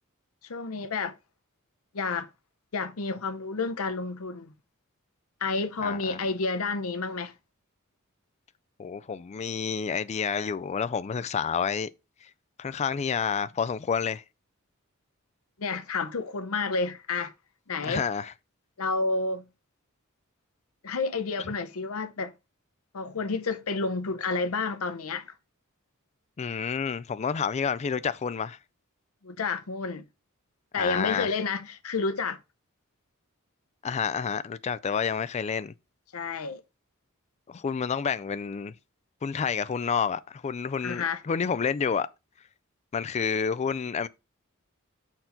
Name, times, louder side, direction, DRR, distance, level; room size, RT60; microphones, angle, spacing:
voice 1, 0.5-1.2 1.9-2.3 2.7-4.5 5.4-7.3 15.6-17.3 17.7-18.1 18.8-19.5 20.8-22.3 22.9-25.3 29.2-30.0 30.7-32.4 36.1-36.6 40.8-41.2, left 4 dB, 80° left, 0.7 m, -30 dB
voice 2, 5.8-6.2 8.8-11.9 12.6-14.2 17.8-18.3 26.4-28.6 30.8-31.3 33.8-35.7 37.5-38.7 39.2-42.1 42.9-44.1, left 6 dB, 30° left, 0.3 m, -29 dB
5.7 x 4.4 x 3.9 m
head